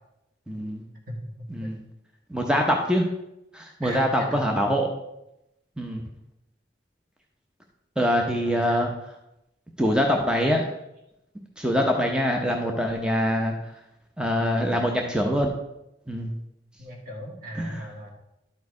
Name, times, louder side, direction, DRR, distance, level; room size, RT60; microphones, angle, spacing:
voice 1, 0.5-0.8 1.5-1.8 2.3-3.1 3.5-4.9 5.8-6.0 8.0-8.9 9.8-10.7 11.6-13.5 14.2-15.5 16.1-16.3 17.6-17.8, equal, 5° right, 1 dB, 0.7 m, -24 dB
voice 2, 1.1-1.8 3.8-4.4 8.4-8.9 16.8-18.1, equal, 50° right, 0 dB, 2.1 m, -36 dB
11.5 x 4.6 x 4.7 m, 0.88 s
head